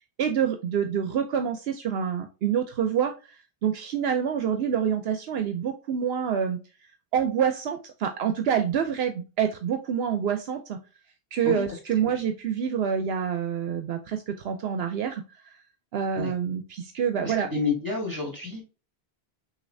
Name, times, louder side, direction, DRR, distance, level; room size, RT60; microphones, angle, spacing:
voice 1, 0.2-6.6 7.1-10.8 11.3-15.2 15.9-17.5, right 8 dB, 75° right, 6 dB, 0.8 m, -27 dB
voice 2, 17.2-18.6, left 4 dB, 20° right, 0 dB, 2.2 m, -29 dB
6.4 x 2.8 x 2.6 m, 0.31 s
omnidirectional pair, 1.1 m